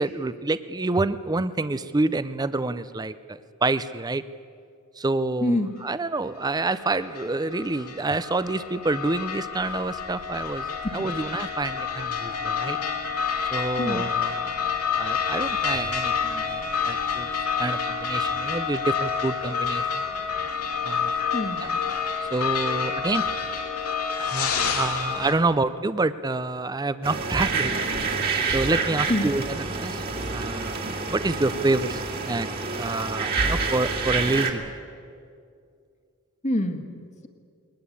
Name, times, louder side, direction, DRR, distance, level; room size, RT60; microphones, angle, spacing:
voice 1, 0.0-4.2 5.0-10.7 10.9-12.8 13.5-17.3 17.6-20.0 20.8-21.1 21.6-21.7 22.2-23.3 24.2-28.2 28.5-30.8 31.1-32.5 32.8-34.7, right 2 dB, 20° right, 14 dB, 0.5 m, -28 dB
voice 2, 5.4-5.7 13.8-14.0 21.3-21.7 29.1-29.3 36.4-37.3, left 1 dB, 35° left, 5 dB, 1.6 m, -26 dB
sound 1, 6.8-25.3, left 6 dB, 90° left, 2.8 m, -28 dB
sound 2, 27.0-34.5, right 4 dB, 45° right, 2.4 m, -28 dB
22.0 x 19.5 x 8.6 m, 2.3 s
head